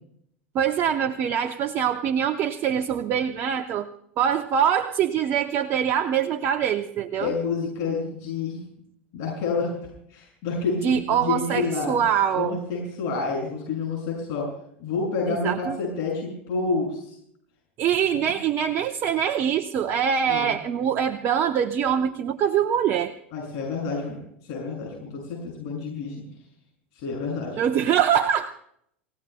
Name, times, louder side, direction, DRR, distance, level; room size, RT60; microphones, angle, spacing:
voice 1, 0.5-3.9 4.2-7.3 10.8-12.6 15.3-15.8 17.8-23.1 27.6-28.5, right 8 dB, 40° right, 6 dB, 0.8 m, -24 dB
voice 2, 7.2-8.6 9.1-9.7 10.1-12.0 12.3-14.5 14.8-17.1 20.3-20.5 23.3-24.2 24.4-26.2 26.9-27.6, left 4 dB, 55° left, -2 dB, 6.7 m, -29 dB
29.5 x 16.5 x 2.3 m, 0.69 s
hypercardioid pair, 90°, 7 cm